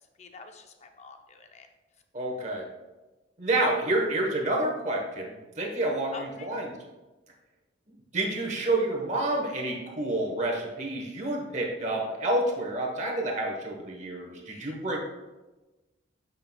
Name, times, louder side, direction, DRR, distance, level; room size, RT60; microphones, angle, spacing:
voice 1, 0.0-1.7 6.1-6.5 14.5-14.8, left 3 dB, 35° left, 5 dB, 0.5 m, -46 dB
voice 2, 2.1-2.6 3.4-6.7 8.1-15.0, right 1 dB, 35° right, 0 dB, 1.1 m, -29 dB
8.3 x 5.4 x 2.2 m, 1.1 s
head